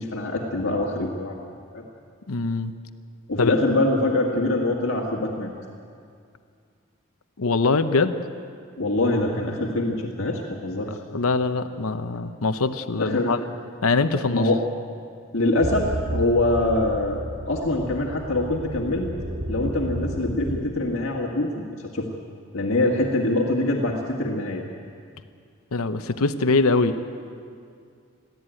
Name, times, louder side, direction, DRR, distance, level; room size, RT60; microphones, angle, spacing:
voice 1, 0.0-1.4 1.7-1.9 3.3-5.5 8.8-10.9 13.0-13.4 14.3-14.6 15.3-19.1 19.5-21.6 21.9-22.1 22.5-24.6, left 2 dB, 65° left, -2 dB, 1.8 m, -24 dB
voice 2, 2.3-2.7 3.4-3.5 7.4-8.1 11.1-13.4 13.8-14.5 25.7-27.0, left 3 dB, 85° left, 9 dB, 0.8 m, -23 dB
sound 1, 15.6-20.6, right 1 dB, 80° right, 2.6 m, -32 dB
22.5 x 15.0 x 9.0 m, 2.3 s
head